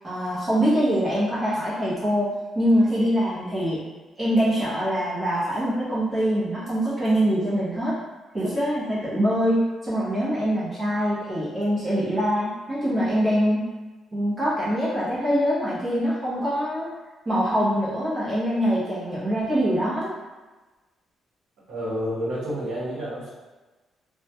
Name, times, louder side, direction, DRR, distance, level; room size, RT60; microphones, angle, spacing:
voice 1, 0.0-2.3 2.5-3.8 4.2-8.0 8.3-13.6 14.1-16.9 17.3-20.1, equal, 20° right, -9 dB, 0.7 m, -24 dB
voice 2, 21.7-23.3, equal, 80° right, -7 dB, 1.0 m, -29 dB
2.2 x 2.1 x 2.8 m, 1.2 s
cardioid pair, 155°, 0 cm